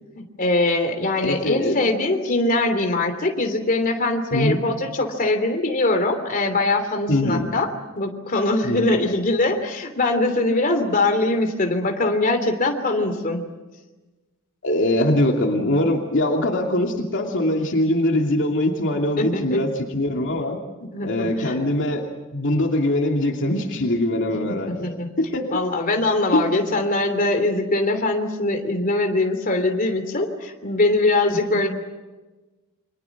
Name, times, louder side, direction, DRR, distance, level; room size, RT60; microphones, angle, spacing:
voice 1, 0.1-7.7 8.0-13.4 19.2-19.6 20.9-21.6 24.5-31.7, left 2 dB, 40° left, 5 dB, 3.1 m, -22 dB
voice 2, 1.2-1.8 4.3-4.6 7.1-7.5 8.6-9.1 14.6-20.6 21.0-22.0 22.3-24.9 25.2-25.6 26.3-26.4 31.5-31.7, left 1 dB, 60° left, 1 dB, 2.7 m, -22 dB
29.5 x 24.5 x 6.0 m, 1.2 s
head